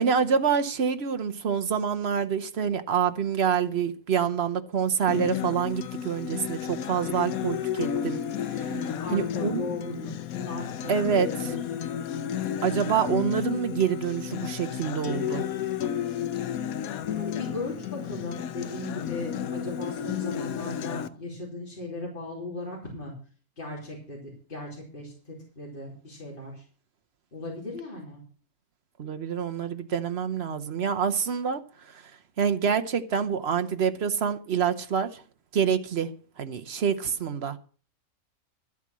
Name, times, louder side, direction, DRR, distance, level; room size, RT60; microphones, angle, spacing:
voice 1, 0.0-8.2 9.1-9.7 10.9-11.5 12.6-15.4 29.0-31.6 32.4-35.2 35.5-36.1 36.4-37.6, right 7 dB, 50° right, 1.0 m, -26 dB
Acoustic guitar, 5.1-21.1, left 9 dB, 75° left, 1.2 m, -32 dB
voice 2, 8.6-11.6 17.1-23.1 23.6-24.2 24.5-26.6 27.3-28.2, left 2 dB, 35° left, 3.6 m, -37 dB
12.5 x 8.4 x 6.1 m
omnidirectional pair, 1.5 m